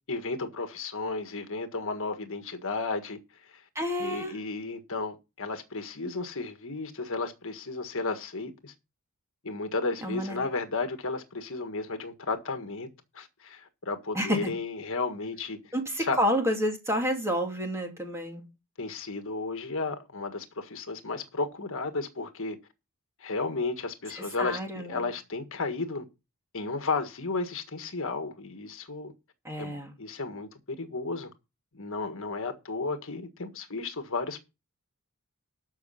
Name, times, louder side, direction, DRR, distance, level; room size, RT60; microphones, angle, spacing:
voice 1, 0.1-3.6 4.0-8.7 9.4-12.9 13.1-15.7 16.0-16.2 18.8-22.6 23.2-26.0 26.5-29.1 29.6-31.3 31.7-34.5, left 3 dB, 65° left, 1.6 m, -33 dB
voice 2, 3.7-4.3 10.0-10.4 14.1-14.5 15.7-18.5 24.1-25.1 29.4-29.9, equal, 10° right, 2.8 m, -29 dB
13.0 x 5.9 x 5.7 m
head